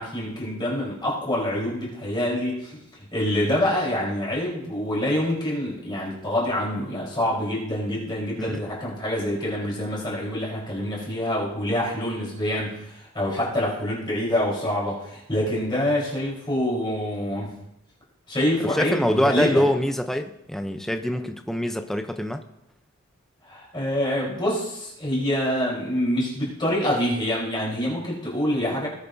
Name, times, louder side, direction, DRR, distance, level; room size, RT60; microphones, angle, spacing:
voice 1, 0.0-2.8 3.1-17.5 18.3-19.7 23.4-28.9, left 1 dB, 20° left, -5 dB, 4.2 m, -26 dB
voice 2, 18.6-22.4, equal, ahead, 6 dB, 0.6 m, -24 dB
20.0 x 8.2 x 2.7 m, 0.83 s
head